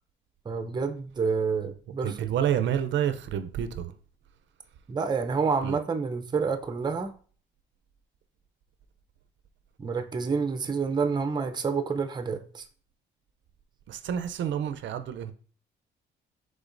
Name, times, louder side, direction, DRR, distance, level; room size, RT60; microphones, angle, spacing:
voice 1, 0.5-2.2 4.9-7.1 9.8-12.6, right 5 dB, 20° right, 0.5 m, -28 dB
voice 2, 2.0-3.9 5.6-5.8 13.9-15.3, right 9 dB, 70° right, 0.5 m, -29 dB
5.1 x 3.8 x 2.5 m
cardioid pair, 90°, 20 cm